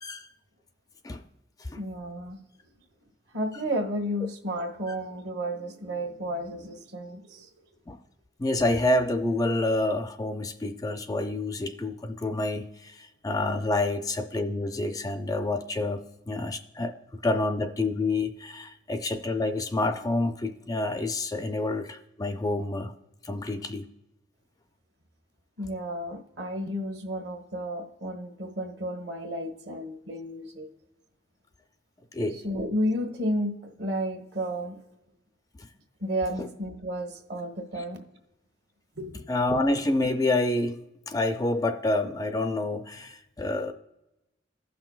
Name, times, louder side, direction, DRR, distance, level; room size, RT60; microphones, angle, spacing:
voice 1, 1.8-2.4 3.3-7.5 25.6-30.7 32.4-34.8 36.0-38.0 38.9-39.3, equal, 60° right, 1.3 m, -32 dB
voice 2, 8.4-22.9 23.2-23.9 32.1-32.4 35.6-35.7 36.4-36.5 37.7-37.8 39.3-40.8 41.1-43.7, left 2 dB, 20° left, 0.3 m, -28 dB
15.5 x 5.9 x 2.3 m
head